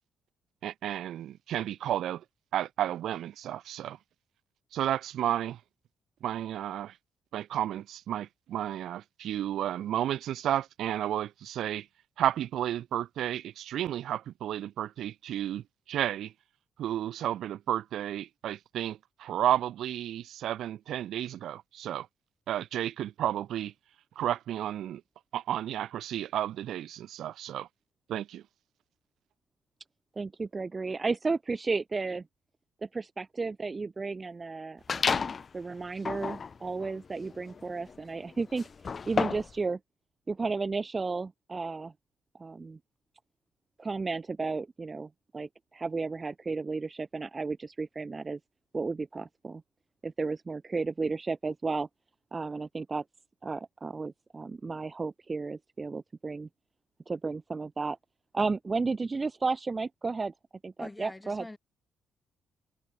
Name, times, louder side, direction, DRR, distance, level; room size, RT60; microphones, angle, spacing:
voice 1, 0.6-2.2 2.5-4.0 4.7-5.6 6.2-6.9 7.3-11.9 12.2-16.3 16.8-22.1 22.5-23.7 24.2-25.0 25.3-27.7 28.1-28.4, right 11 dB, 75° right, 1.7 m, -32 dB
voice 2, 30.2-32.2 32.8-35.3 35.5-38.7 39.1-39.8 40.3-41.9 42.4-42.8 43.8-48.4 48.7-49.6 50.0-51.9 52.3-53.0 53.4-56.5 57.1-58.0 58.3-60.3 60.6-61.5, right 4 dB, 30° right, 0.7 m, -33 dB
sound 1, 34.9-35.5 36.0-39.6, left 5 dB, 40° left, 1.5 m, -32 dB
voice 3, 60.8-61.6, left 2 dB, 15° left, 7.8 m, -43 dB
cardioid pair, 90°, 0 cm